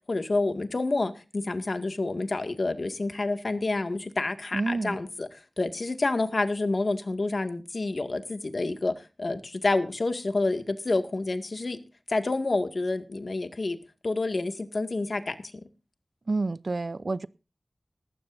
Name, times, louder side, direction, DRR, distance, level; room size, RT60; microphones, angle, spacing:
voice 1, 0.1-11.8 12.1-13.8 14.0-15.4, left 2 dB, 60° left, 2.0 m, -28 dB
voice 2, 4.5-5.0 16.3-17.3, right 3 dB, 60° right, 0.6 m, -29 dB
19.0 x 15.0 x 2.7 m
wide cardioid pair, 60°, 0 cm